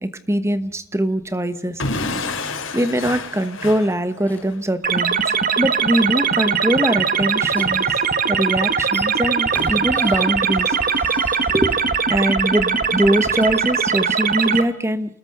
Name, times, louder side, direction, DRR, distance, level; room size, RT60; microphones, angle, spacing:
voice 1, 0.0-1.8 2.7-5.2 5.6-7.8 8.3-10.8 11.5-11.7 12.1-15.2, right 1 dB, 15° right, 11 dB, 1.2 m, -22 dB
Explosion / Shatter, 1.8-4.6, left 3 dB, 80° left, 4.2 m, -28 dB
sound 1, 4.2-4.7 7.5-12.2 13.2-13.7, left 1 dB, 10° left, 2.6 m, -37 dB
sound 2, 4.8-14.6, right 6 dB, 45° right, 1.3 m, -20 dB
29.0 x 20.0 x 6.7 m, 0.67 s
head